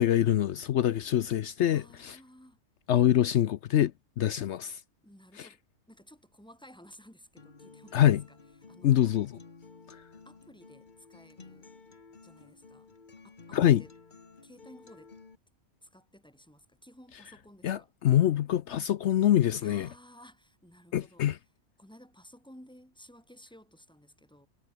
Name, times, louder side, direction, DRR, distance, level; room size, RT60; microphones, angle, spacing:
voice 1, 0.0-2.2 2.9-4.8 5.4-5.5 7.9-8.2 8.8-9.3 13.5-13.8 17.6-19.9 20.9-21.4, left 11 dB, 65° left, 0.9 m, -25 dB
voice 2, 1.7-2.6 5.0-5.6 5.9-8.4 8.7-9.0 10.3-11.7 12.2-12.9 13.2-13.9 14.4-15.1 15.8-17.9 19.6-21.3 21.8-24.5, equal, 5° left, 5.4 m, -55 dB
Acoustic guitar, 7.4-15.3, left 4 dB, 40° left, 1.7 m, -53 dB
omnidirectional pair, 1.3 m